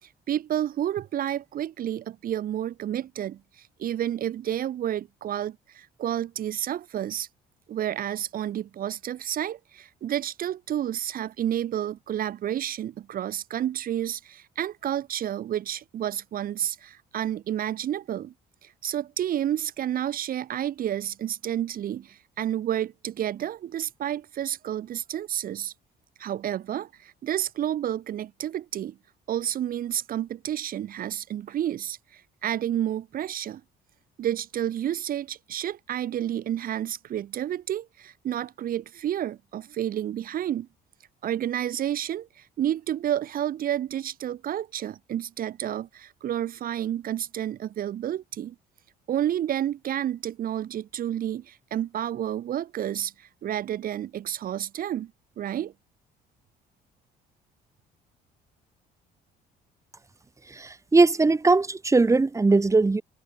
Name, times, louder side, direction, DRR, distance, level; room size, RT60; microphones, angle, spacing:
voice 1, 0.0-7.3 7.7-18.3 18.6-25.7 26.2-28.9 29.3-33.6 34.2-40.7 41.2-48.5 49.1-55.1 55.4-55.7, right 11 dB, 60° right, 2.6 m, -30 dB
voice 2, 60.6-63.0, right 3 dB, 20° right, 3.5 m, -20 dB
cardioid pair, 110°, 17 cm